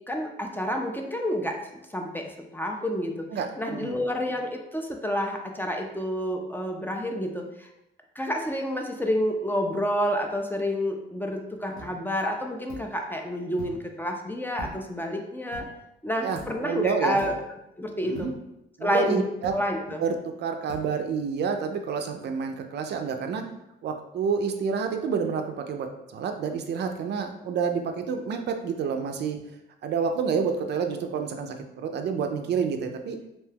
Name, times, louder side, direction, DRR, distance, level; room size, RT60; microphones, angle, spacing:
voice 1, 0.0-1.6 1.9-3.3 3.6-7.7 8.2-15.7 16.0-17.4 17.8-18.3 18.8-19.2 19.5-20.0, equal, 10° left, 2 dB, 0.3 m, -29 dB
voice 2, 3.3-3.9 16.2-17.2 18.0-18.3 18.8-19.5 20.0-23.5 23.8-25.9 26.1-29.4 29.8-33.2, right 6 dB, 60° right, 5 dB, 0.4 m, -29 dB
sound 1, 11.8-11.9 12.7-12.9 13.6-13.9 14.6-15.0 15.5-15.8 16.3-16.7 17.2-17.5 18.1-18.5 19.4-19.7 20.7-20.9, left 2 dB, 85° left, 0.8 m, -42 dB
2.7 x 2.2 x 3.3 m, 0.88 s
cardioid pair, 90°, 20 cm